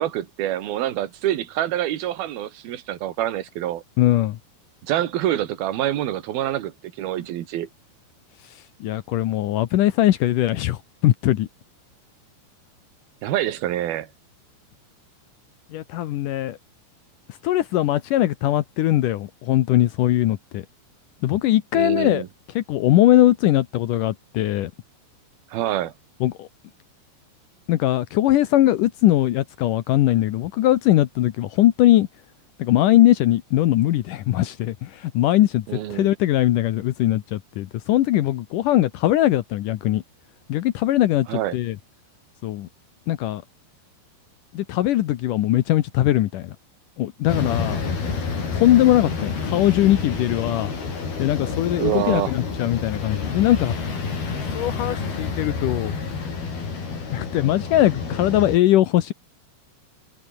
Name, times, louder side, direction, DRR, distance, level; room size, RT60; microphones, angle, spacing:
voice 1, 0.0-3.8 4.8-7.7 13.2-14.1 21.7-22.3 25.5-25.9 35.7-36.1 41.3-41.5 51.8-52.3, right 12 dB, 60° right, 3.4 m, -26 dB
voice 2, 4.0-4.4 8.8-11.5 15.7-16.6 17.4-20.6 21.2-22.2 22.5-24.7 26.2-26.5 27.7-32.1 32.6-40.0 40.5-41.8 42.4-42.7 43.1-43.4 44.5-46.5 47.0-47.8 48.5-50.7 51.2-53.7 54.5-56.0 57.1-59.1, left 14 dB, 90° left, 1.8 m, -20 dB
sound 1, 47.3-58.6, left 4 dB, 55° left, 8.3 m, -29 dB
omnidirectional pair, 5.3 m